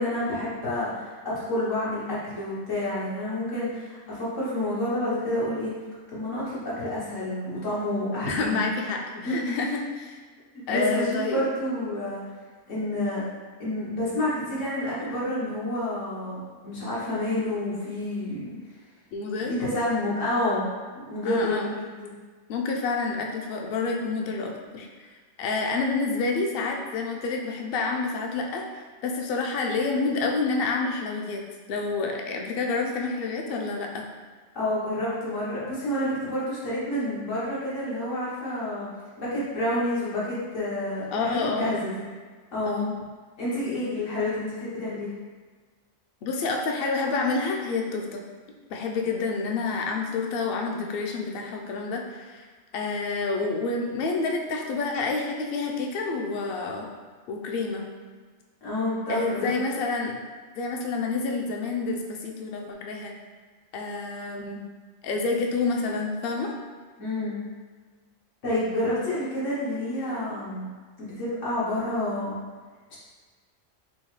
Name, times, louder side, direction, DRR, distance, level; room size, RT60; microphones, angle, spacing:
voice 1, 0.0-5.7 6.1-8.6 9.2-9.5 10.7-12.2 12.7-13.2 13.6-18.5 19.5-20.6 20.9-22.1 34.5-38.9 39.2-42.0 42.5-42.9 43.4-45.1 58.6-59.5 67.0-67.4 68.4-70.7 71.0-72.3 72.9-73.0, left 1 dB, 85° left, -9 dB, 1.6 m, -29 dB
voice 2, 8.3-10.2 10.7-11.4 19.1-19.5 21.2-21.8 22.5-24.9 25.4-28.6 29.0-31.4 31.7-34.0 41.1-41.8 42.6-43.0 46.2-48.2 48.7-52.5 52.7-56.9 57.3-57.9 59.1-60.2 60.6-63.1 63.7-64.6 65.0-66.5, left 3 dB, 60° left, 1 dB, 0.7 m, -28 dB
5.3 x 2.1 x 3.1 m, 1.5 s
omnidirectional pair, 1.3 m